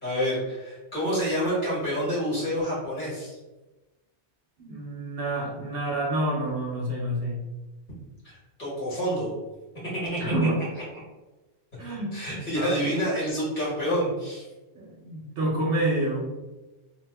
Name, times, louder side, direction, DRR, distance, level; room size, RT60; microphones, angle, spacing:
voice 1, 0.0-3.4 8.2-8.3 8.6-9.3 9.9-10.2 12.1-14.5, equal, 45° left, -7 dB, 1.6 m, -28 dB
voice 2, 4.6-7.4 10.2-10.6 11.8-12.1 12.5-12.8 14.7-16.3, right 1 dB, 60° right, -3 dB, 0.8 m, -28 dB
2.8 x 2.0 x 3.4 m, 1.1 s
omnidirectional pair, 1.1 m